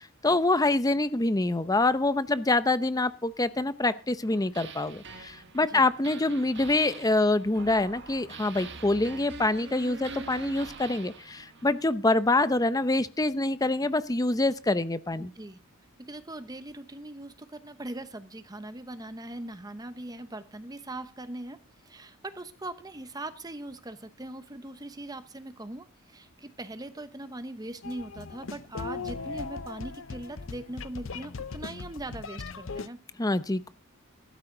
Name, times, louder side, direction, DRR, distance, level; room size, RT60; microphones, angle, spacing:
voice 1, 0.2-15.3 33.2-33.7, left 2 dB, 15° left, 13 dB, 0.7 m, -26 dB
sound 1, 4.2-11.9, right 4 dB, 55° right, 1.6 m, -45 dB
voice 2, 15.2-15.6 16.0-21.6 21.8-33.0, right 1 dB, 20° right, 11 dB, 0.9 m, -40 dB
sound 2, 27.8-32.9, left 4 dB, 65° left, 0.7 m, -38 dB
14.5 x 12.5 x 3.9 m, 0.35 s
head